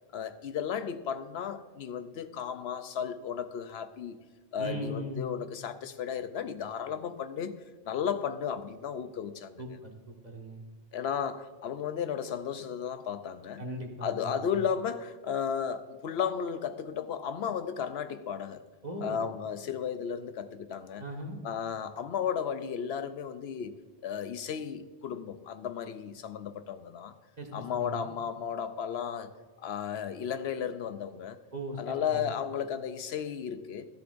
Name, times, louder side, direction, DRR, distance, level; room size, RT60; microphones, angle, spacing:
voice 1, 0.1-4.2 4.5-7.5 7.8-9.6 10.9-13.6 14.0-18.6 19.0-21.0 21.4-23.8 24.0-27.1 27.5-29.3 29.6-31.4 31.8-33.9, left 7 dB, 85° left, 0.9 m, -34 dB
voice 2, 4.6-5.4 9.6-10.6 13.6-14.7 18.8-19.2 21.0-21.4 27.4-28.1 31.5-32.4, right 1 dB, 40° right, 1.7 m, -39 dB
13.0 x 11.5 x 2.6 m
omnidirectional pair, 1.0 m